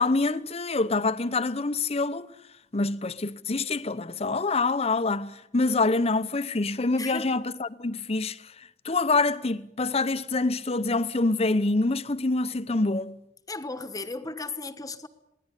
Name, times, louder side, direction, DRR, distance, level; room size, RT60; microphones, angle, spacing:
voice 1, 0.0-2.3 2.7-13.2, left 3 dB, 35° left, 0.8 m, -26 dB
voice 2, 7.0-7.3 13.5-15.1, left 3 dB, 20° left, 1.2 m, -35 dB
22.0 x 17.0 x 9.9 m
head